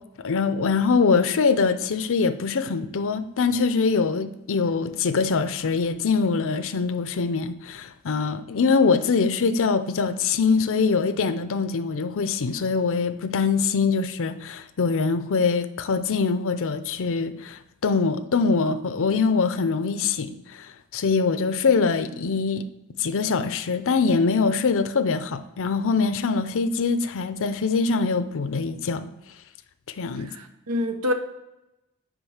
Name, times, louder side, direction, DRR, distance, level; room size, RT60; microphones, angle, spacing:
voice 1, 0.2-22.6 23.0-29.1 29.9-30.3, left 4 dB, 60° left, 0.5 m, -23 dB
voice 2, 30.3-31.1, left 1 dB, 90° right, 0.9 m, -26 dB
6.3 x 5.2 x 6.4 m
head